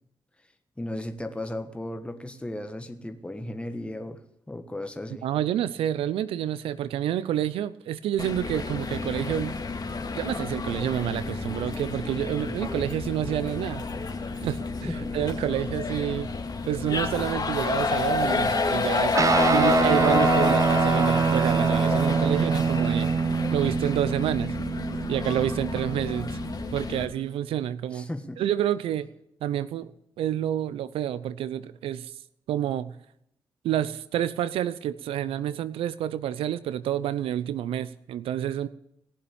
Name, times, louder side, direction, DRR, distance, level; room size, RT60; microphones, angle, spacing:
voice 1, 0.8-4.2 4.5-5.2 14.8-15.1 27.9-28.4, left 1 dB, 10° left, 7 dB, 1.4 m, -35 dB
voice 2, 5.2-9.6 10.2-13.9 14.4-16.3 16.7-23.2 23.5-24.6 25.1-26.4 26.7-28.1 28.4-29.1 29.4-29.9 30.2-32.1 32.5-32.9 33.6-38.7, right 11 dB, 80° right, 16 dB, 0.6 m, -28 dB
sound 1, 8.2-27.0, left 4 dB, 45° left, 2.2 m, -29 dB
Guitar, 19.1-26.8, right 5 dB, 35° right, 0.5 m, -25 dB
18.0 x 7.2 x 8.6 m, 0.77 s
supercardioid pair, 45°, 9 cm